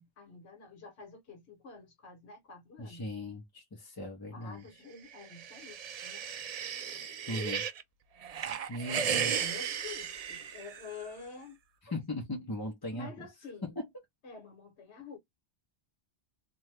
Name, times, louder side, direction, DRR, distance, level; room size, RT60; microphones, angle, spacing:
voice 1, 0.0-3.1 4.3-6.3 8.8-9.0 9.3-11.6 12.9-13.8 14.2-15.2, left 4 dB, 70° left, 1.3 m, -48 dB
voice 2, 2.8-4.6 7.3-7.6 8.7-9.3 11.9-13.3 13.6-13.7, left 1 dB, 25° left, 0.6 m, -38 dB
sound 1, 5.1-7.8 8.2-11.1, right 7 dB, 80° right, 0.3 m, -35 dB
2.6 x 2.3 x 3.2 m
omnidirectional pair, 1.2 m